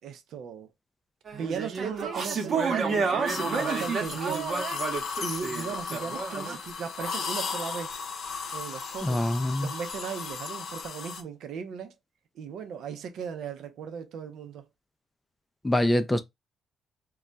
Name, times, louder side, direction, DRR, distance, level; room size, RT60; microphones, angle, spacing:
voice 1, 0.0-0.7 1.3-4.6 5.2-8.0 8.5-9.3 9.6-11.9 12.3-14.6, right 6 dB, 75° right, 0.6 m, -37 dB
sound 1, 1.3-6.6, right 5 dB, 55° right, 0.9 m, -30 dB
sound 2, 3.3-11.2, left 5 dB, 65° left, 0.6 m, -35 dB
voice 2, 9.0-9.7 15.6-16.2, left 1 dB, 15° left, 0.5 m, -24 dB
2.3 x 2.2 x 3.8 m
cardioid pair, 90°, 0 cm